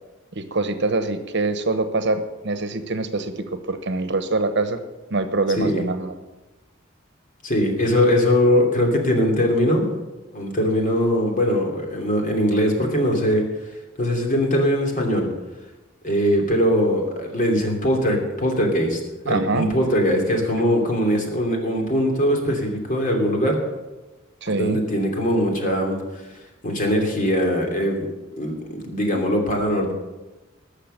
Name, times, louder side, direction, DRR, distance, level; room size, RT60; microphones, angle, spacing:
voice 1, 0.3-4.8 5.1-6.2 19.3-19.7 24.4-24.8, right 3 dB, 60° right, 9 dB, 1.1 m, -24 dB
voice 2, 7.4-10.0 10.3-13.5 14.0-15.3 16.0-19.0 19.2-23.6 24.5-26.0 26.3-26.4 26.6-28.1 28.4-29.9, equal, 40° left, 2 dB, 2.8 m, -21 dB
19.0 x 6.7 x 6.7 m, 1.1 s
head